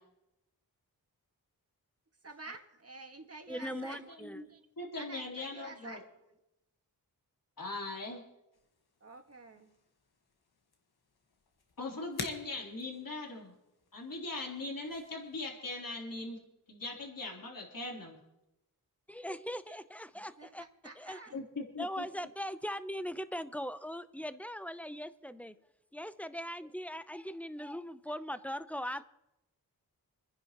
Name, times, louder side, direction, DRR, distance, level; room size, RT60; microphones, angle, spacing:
voice 1, 2.2-4.1 4.4-4.7 4.9-6.1 8.1-8.2 9.0-9.7 19.6-19.8 20.1-21.4 21.9-22.3, right 3 dB, 40° right, 4 dB, 1.8 m, -49 dB
voice 2, 3.5-4.4 19.1-20.7 21.0-21.2 21.8-25.6 25.9-29.0, equal, 5° left, 13 dB, 0.6 m, -40 dB
voice 3, 4.1-4.4 4.8-6.0 7.6-8.2 11.8-13.5 13.9-16.4 16.7-18.2 21.3-22.0, left 2 dB, 60° left, -2 dB, 3.5 m, -40 dB
sound 1, 8.5-15.5, left 4 dB, 80° left, 1.5 m, -50 dB
27.0 x 10.5 x 3.0 m, 0.91 s
wide cardioid pair, 65°, 38 cm